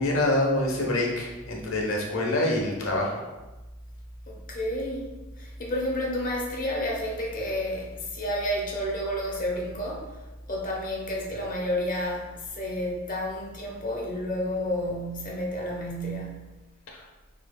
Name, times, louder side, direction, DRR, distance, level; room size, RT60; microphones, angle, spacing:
voice 1, 0.0-3.2 16.9-17.0, left 1 dB, 65° left, -1 dB, 1.0 m, -26 dB
voice 2, 4.3-5.1 5.4-10.2 10.5-16.5, equal, 40° left, -2 dB, 1.0 m, -30 dB
6.6 x 3.2 x 2.3 m, 1.1 s
head